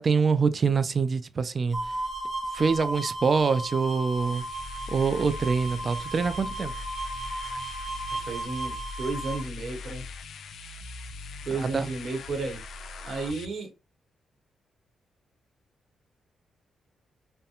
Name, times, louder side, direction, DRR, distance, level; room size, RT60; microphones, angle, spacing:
voice 1, 0.0-1.8 2.5-4.4 4.9-6.7 11.5-11.9, right 5 dB, 45° right, 0.3 m, -25 dB
sound 1, 1.7-9.4, right 1 dB, 20° right, 0.9 m, -35 dB
sound 2, 4.1-13.5, left 4 dB, 75° left, 0.3 m, -41 dB
voice 2, 8.1-10.0 11.4-12.6 13.0-13.7, right 3 dB, 65° right, 1.0 m, -33 dB
2.8 x 2.1 x 2.3 m
cardioid pair, 75°, 0 cm